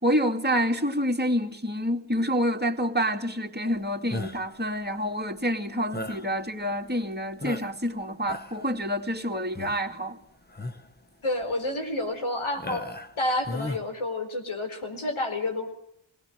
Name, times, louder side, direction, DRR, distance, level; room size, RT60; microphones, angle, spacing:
voice 1, 0.0-10.2, equal, 20° right, 2.4 m, -27 dB
sound 1, 4.1-4.6 5.9-6.3 6.9-7.0 7.4-7.9 8.2-8.7 9.5-9.9 10.5-10.9 11.4-11.5 12.6-13.1 13.4-13.8, left 2 dB, 20° left, 1.4 m, -35 dB
voice 2, 11.2-12.8 13.2-15.7, left 2 dB, 85° left, 4.6 m, -29 dB
20.5 x 18.5 x 8.9 m
wide cardioid pair, 65°, 47 cm